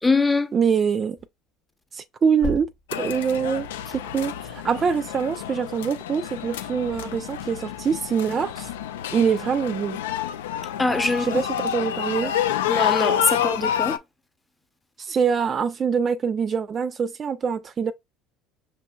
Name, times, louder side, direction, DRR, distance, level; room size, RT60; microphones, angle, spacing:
voice 1, 0.0-0.5 10.8-11.4 12.2-12.3 12.7-14.0, left 3 dB, 15° left, 0.7 m, -23 dB
voice 2, 0.5-1.2 1.9-2.7 3.0-3.7 3.9-8.7 9.1-10.0 11.3-12.3 15.0-17.9, right 6 dB, 35° right, 0.4 m, -24 dB
sound 1, 1.9-2.0 2.4-3.5 6.5-7.1, left 4 dB, 60° left, 0.7 m, -34 dB
sound 2, 2.9-14.0, left 10 dB, 90° left, 0.3 m, -28 dB
5.4 x 2.8 x 2.3 m
hypercardioid pair, 85°, 0 cm